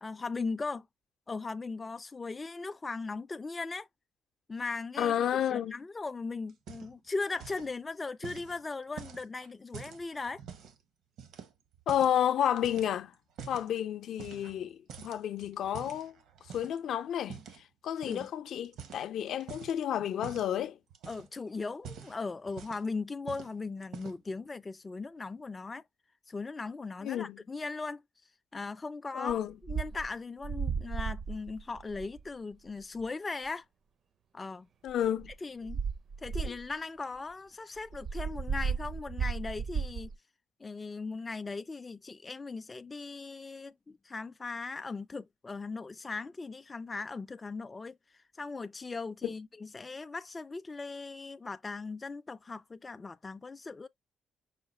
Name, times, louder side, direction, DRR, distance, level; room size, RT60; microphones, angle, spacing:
voice 1, 0.0-0.9 1.3-3.9 4.5-10.4 18.1-18.3 21.1-25.8 26.3-28.0 28.5-33.7 34.3-34.7 35.4-35.8 36.2-40.1 40.6-53.9, left 3 dB, 25° left, 0.3 m, -38 dB
voice 2, 5.0-5.7 11.9-13.1 13.5-16.2 16.5-17.4 17.8-20.8 27.0-27.4 29.1-29.5 34.8-35.3 36.4-36.5 49.2-49.3, left 10 dB, 75° left, 0.6 m, -31 dB
sound 1, 6.5-7.1 7.3-7.7 8.2-10.8 11.2-12.2 12.6-13.7 14.2-14.6 14.9-16.8 17.3-17.6 18.0-18.3 18.6-19.8 20.2-20.5 20.9-21.4 21.7-22.9 23.3-23.5 23.8-24.3, right 7 dB, 80° right, 1.0 m, -47 dB
sound 2, 29.3-29.4 29.6-30.1 30.4-32.3 33.0-33.1 34.9-35.3 35.7-36.7 37.8-40.1, right 6 dB, 55° right, 0.5 m, -34 dB
5.6 x 2.2 x 4.2 m
cardioid pair, 90°, 0 cm